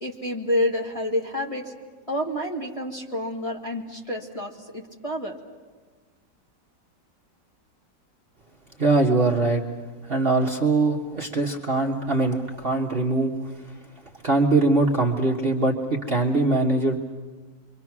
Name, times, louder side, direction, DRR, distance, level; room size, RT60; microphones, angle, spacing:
voice 1, 0.0-1.7 2.1-5.4, left 1 dB, 20° left, -1 dB, 1.8 m, -28 dB
voice 2, 8.8-9.6 10.1-13.5 14.2-17.0, right 2 dB, 35° right, -1 dB, 1.5 m, -22 dB
27.0 x 24.0 x 6.1 m, 1.4 s
omnidirectional pair, 1.9 m